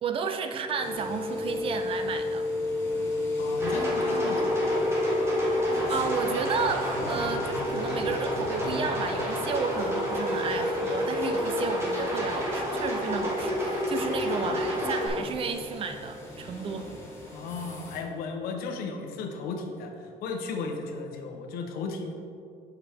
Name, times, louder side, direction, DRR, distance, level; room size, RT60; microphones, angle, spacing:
voice 1, 0.0-2.5 5.5-16.9, right 5 dB, 35° right, 7 dB, 0.4 m, -32 dB
sound 1, 0.8-18.0, left 2 dB, 15° left, 1.2 m, -34 dB
voice 2, 3.4-4.7 17.3-22.1, left 4 dB, 90° left, 3 dB, 0.8 m, -35 dB
sound 2, 3.6-15.1, equal, 15° right, 1.3 m, -29 dB
6.6 x 5.8 x 3.5 m, 2.5 s
cardioid pair, 165°, 15 cm